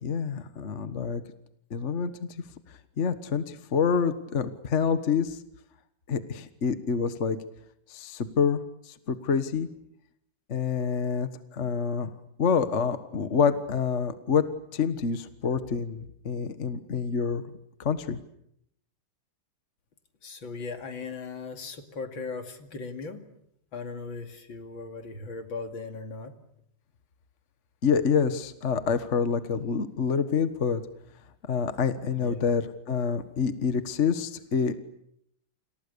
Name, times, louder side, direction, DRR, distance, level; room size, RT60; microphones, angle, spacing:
voice 1, 0.0-1.2 1.7-2.1 3.0-5.4 6.1-7.4 7.9-9.7 10.5-12.1 12.4-14.4 14.7-17.5 17.8-18.2 27.8-30.8 31.4-34.8, left 6 dB, 40° left, 10 dB, 1.5 m, -27 dB
voice 2, 20.2-23.3 23.7-26.3 32.2-32.4, left 4 dB, 70° left, 6 dB, 3.1 m, -38 dB
30.0 x 27.5 x 6.9 m, 0.75 s
omnidirectional pair, 2.2 m